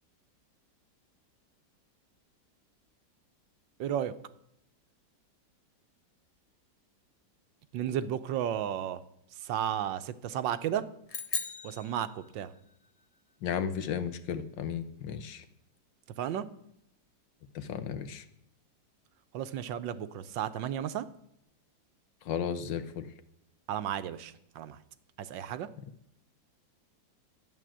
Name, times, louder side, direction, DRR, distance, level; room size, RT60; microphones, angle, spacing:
voice 1, 3.8-4.1 7.7-9.0 9.4-10.9 11.6-12.5 16.2-16.5 19.3-21.1 23.7-24.8 25.2-25.7, right 10 dB, 80° right, 12 dB, 1.4 m, -33 dB
sound 1, 11.1-12.7, left 4 dB, 40° left, 0.5 m, -38 dB
voice 2, 13.4-15.4 17.6-18.2 22.3-23.1, left 8 dB, 75° left, 11 dB, 1.6 m, -34 dB
11.0 x 9.3 x 7.5 m, 0.76 s
omnidirectional pair, 2.0 m